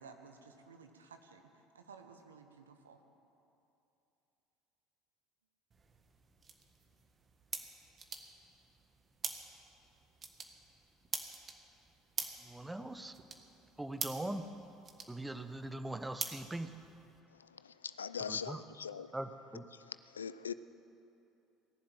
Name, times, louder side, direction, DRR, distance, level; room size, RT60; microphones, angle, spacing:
voice 1, 0.0-3.0, right 5 dB, 85° right, 6 dB, 1.2 m, -56 dB
sound 1, 5.7-17.2, right 5 dB, 35° right, 1.6 m, -46 dB
voice 2, 12.4-13.1 13.8-14.4 15.1-16.8 18.3-18.6 19.1-19.7, right 1 dB, 10° right, 9 dB, 1.0 m, -41 dB
voice 3, 17.6-19.1 19.9-20.5, left 7 dB, 90° left, 14 dB, 0.4 m, -41 dB
19.5 x 7.5 x 9.1 m, 2.8 s
hypercardioid pair, 65°, 0 cm